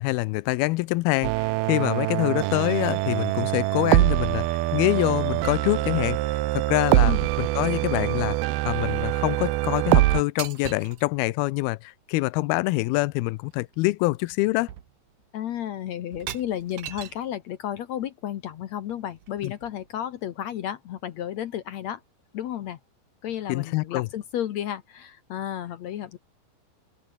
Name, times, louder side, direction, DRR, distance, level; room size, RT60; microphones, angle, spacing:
voice 1, 0.0-4.5 4.7-6.2 6.5-8.4 8.7-14.7 19.4-19.5 23.5-24.1, left 21 dB, 90° left, 2.5 m, -25 dB
sound 1, 1.2-10.2, right 19 dB, 85° right, 2.7 m, -24 dB
sound 2, 10.4-11.1 13.1-13.2 13.5-13.8 14.2-14.4 14.7-15.3 16.1-17.3 18.9-19.9, right 11 dB, 70° right, 3.2 m, -40 dB
voice 2, 15.3-22.0 22.3-22.8 23.2-26.2, left 11 dB, 65° left, 1.8 m, -32 dB
omnidirectional pair, 4.3 m